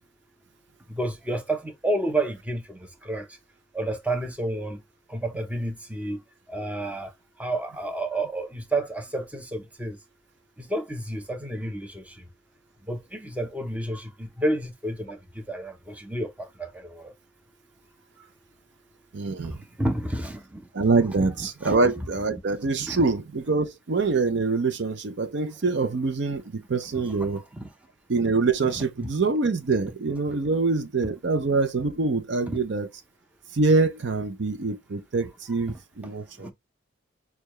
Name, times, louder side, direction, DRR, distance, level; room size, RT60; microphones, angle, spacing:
voice 1, 0.9-3.3 3.7-4.8 5.1-6.2 6.5-7.1 7.4-10.0 10.6-12.2 12.8-17.1 18.2-18.3 19.4-20.7 21.6-21.8 22.8-23.1 27.1-27.3 27.5-27.7 28.7-29.1 32.5-32.6 35.7-36.5, right 1 dB, 5° right, 0.6 m, -31 dB
voice 2, 19.1-19.6 20.7-27.4 28.1-32.9 33.5-36.5, right 3 dB, 60° right, 0.5 m, -25 dB
6.7 x 2.3 x 3.0 m
head